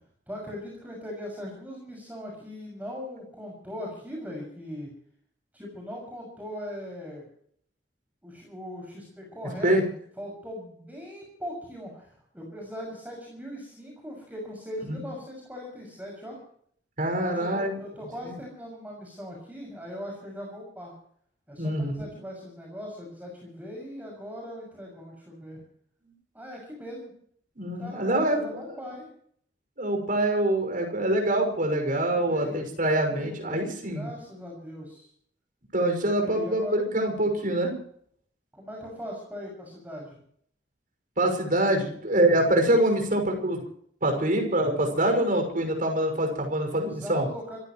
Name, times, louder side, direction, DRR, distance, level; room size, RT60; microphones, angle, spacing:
voice 1, 0.3-4.9 5.5-7.3 8.2-9.7 10.2-16.4 17.2-20.9 21.5-25.6 26.3-27.1 27.8-29.1 32.1-32.6 33.1-35.1 36.2-36.7 38.5-40.2 46.7-47.6, equal, 10° right, -1 dB, 6.5 m, -39 dB
voice 2, 17.0-17.7 18.2-18.3 21.6-22.0 27.6-28.4 29.8-34.1 35.7-37.7 41.2-43.6 44.0-47.3, right 1 dB, 50° right, 3 dB, 6.0 m, -25 dB
27.0 x 15.5 x 3.1 m, 0.63 s
head